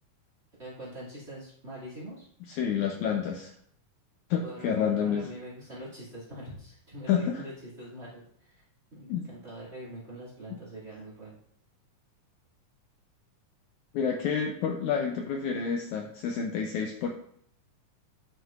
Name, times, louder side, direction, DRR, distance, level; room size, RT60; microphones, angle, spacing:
voice 1, 0.6-2.3 4.3-8.6 8.9-11.4, right 1 dB, 25° right, -6 dB, 1.9 m, -44 dB
voice 2, 2.5-3.5 4.3-5.3 7.1-7.4 9.1-9.3 13.9-17.1, left 7 dB, 80° left, 2 dB, 1.8 m, -29 dB
11.0 x 6.2 x 2.5 m, 0.66 s
omnidirectional pair, 4.0 m